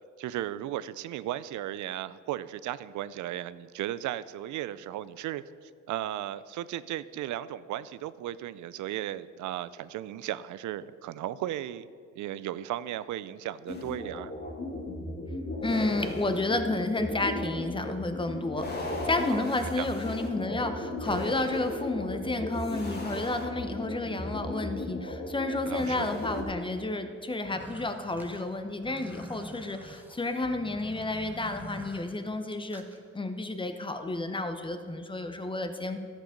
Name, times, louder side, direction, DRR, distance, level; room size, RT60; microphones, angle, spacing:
voice 1, 0.2-11.9 12.1-14.3 19.3-19.9 25.7-26.1, right 13 dB, 75° right, 16 dB, 0.5 m, -36 dB
sound 1, 13.7-26.4, left 1 dB, 35° left, 1.9 m, -36 dB
voice 2, 15.6-32.8 33.1-36.0, left 2 dB, 15° left, 7 dB, 0.9 m, -31 dB
sound 2, 27.4-33.0, right 1 dB, 5° right, 1.1 m, -46 dB
12.0 x 7.6 x 5.1 m, 2.2 s
cardioid pair, 90°, 30 cm